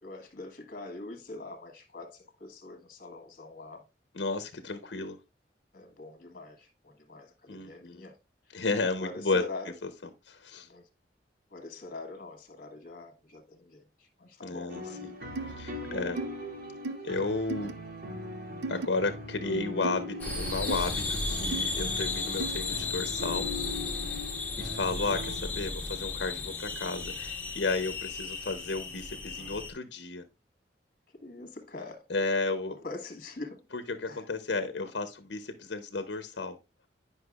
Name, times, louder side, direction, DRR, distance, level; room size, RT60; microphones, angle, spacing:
voice 1, 0.0-3.8 5.7-8.2 8.5-9.7 10.6-10.8 11.5-15.0 15.7-16.0 29.4-29.6 31.1-32.1 32.7-33.6 34.0-34.3 34.8-34.9, left 3 dB, 50° left, 1.4 m, -44 dB
voice 2, 4.1-5.2 7.5-8.0 8.5-9.4 9.8-9.9 10.3-10.7 14.4-15.1 15.6-16.2 17.0-17.7 18.7-23.5 24.1-24.2 24.6-30.2 32.1-32.8 33.7-36.6, left 3 dB, 75° left, 0.7 m, -33 dB
sound 1, 14.7-25.4, left 1 dB, 60° right, 2.2 m, -40 dB
sound 2, 15.4-15.5 16.2-16.3 16.8-17.0 17.5-17.7 18.6-18.9 19.8-20.0 20.7-20.8 21.5-21.6 22.4-22.6, right 3 dB, 85° right, 0.5 m, -35 dB
sound 3, 20.2-29.7, left 4 dB, 10° left, 1.6 m, -34 dB
9.8 x 5.5 x 2.4 m
head